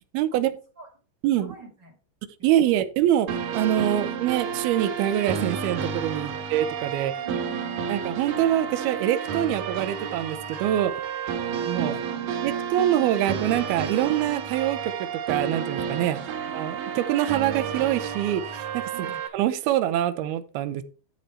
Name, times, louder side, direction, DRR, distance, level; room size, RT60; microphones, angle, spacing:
voice 1, 0.1-0.5 1.2-1.5 2.4-3.3 3.5-7.1 7.9-10.9 11.6-11.9 12.4-14.9 15.3-16.2 16.5-18.9 19.3-20.8, right 12 dB, 85° right, 11 dB, 2.7 m, -24 dB
voice 2, 1.3-2.0 2.6-2.7 7.2-7.8 11.8-12.2 18.9-19.2, right 3 dB, 40° right, 4 dB, 1.8 m, -43 dB
sound 1, 3.3-19.3, right 7 dB, 65° right, 2.7 m, -31 dB
12.5 x 4.7 x 4.4 m, 0.37 s
omnidirectional pair, 4.5 m